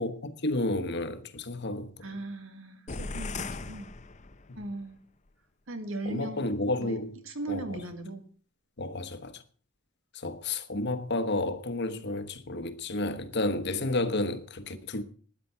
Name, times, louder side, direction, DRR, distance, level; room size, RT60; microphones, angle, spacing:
voice 1, 0.0-2.0 4.5-4.6 6.0-7.2 7.5-7.8 8.8-9.4 10.1-15.0, left 2 dB, 60° left, 1.2 m, -31 dB
voice 2, 2.0-3.9 4.6-5.0 5.7-6.4 6.8-7.0 7.2-8.2, right 2 dB, 85° right, 2.1 m, -38 dB
sound 1, 2.9-4.7, left 3 dB, 35° left, 0.7 m, -38 dB
12.5 x 10.5 x 5.7 m
head